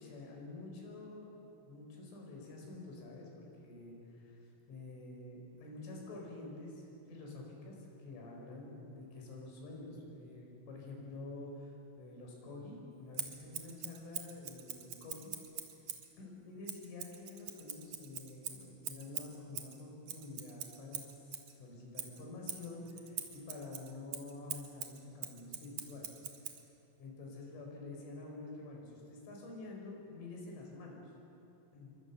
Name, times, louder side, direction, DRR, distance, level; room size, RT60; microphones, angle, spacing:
voice 1, 0.0-1.4 1.7-4.4 4.7-15.3 16.2-26.1 27.0-31.0 31.7-31.9, left 2 dB, 85° left, 0 dB, 7.4 m, -48 dB
Scissors, 13.1-16.1 16.6-21.5 21.9-26.6, right 9 dB, 60° right, 2.1 m, -44 dB
28.0 x 24.0 x 7.2 m, 2.8 s
omnidirectional pair, 5.4 m